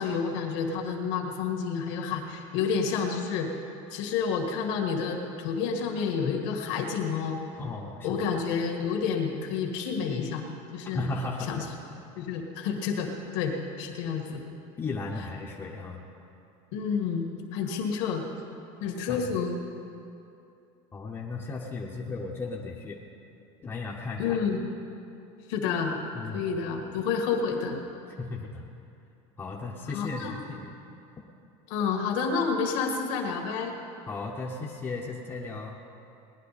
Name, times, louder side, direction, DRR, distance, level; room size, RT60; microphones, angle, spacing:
voice 1, 0.0-3.5 3.9-7.4 8.0-10.5 10.7-11.1 11.4-11.7 12.2-14.4 15.2-15.3 16.7-18.2 18.8-19.6 24.2-24.6 25.5-26.0 26.2-27.8 29.9-30.4 31.7-33.8, left 6 dB, 75° left, 2 dB, 1.9 m, -29 dB
voice 2, 7.6-8.1 10.9-11.6 14.8-16.0 19.1-19.3 20.9-23.0 23.6-24.4 26.1-26.4 28.2-28.6 29.4-30.7 34.1-35.7, left 3 dB, 15° left, -4 dB, 0.9 m, -35 dB
19.0 x 11.0 x 4.2 m, 2.7 s
cardioid pair, 165°, 15 cm